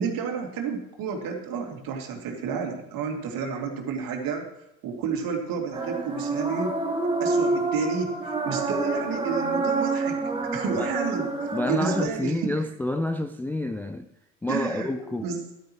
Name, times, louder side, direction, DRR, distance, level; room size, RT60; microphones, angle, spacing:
voice 1, 0.0-4.5 4.8-6.8 7.2-10.2 10.5-12.5 14.5-14.9 15.2-15.4, right 5 dB, 50° right, 2.7 m, -30 dB
sound 1, 5.7-12.1, right 3 dB, 10° right, 1.8 m, -27 dB
voice 2, 11.5-14.1 14.4-15.3, left 2 dB, 5° left, 0.4 m, -28 dB
13.5 x 12.5 x 3.1 m
hypercardioid pair, 70°, 44 cm